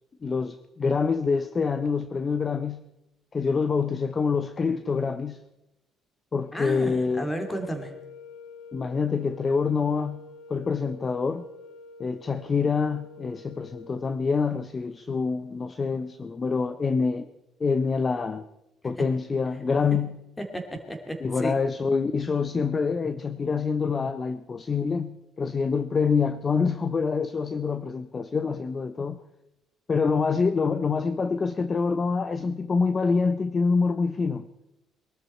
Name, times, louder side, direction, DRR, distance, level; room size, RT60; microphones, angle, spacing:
voice 1, 0.2-2.8 3.3-5.4 6.3-7.3 8.7-11.5 12.0-17.3 17.6-18.5 18.8-20.2 21.2-29.2 29.9-34.5, left 5 dB, 30° left, 12 dB, 0.6 m, -26 dB
sound 1, 6.5-14.7, left 4 dB, 80° left, 1.0 m, -47 dB
voice 2, 6.5-7.9 20.5-21.6, right 1 dB, 10° left, 5 dB, 2.6 m, -33 dB
22.0 x 13.0 x 4.3 m, 0.91 s
cardioid pair, 125°, 0 cm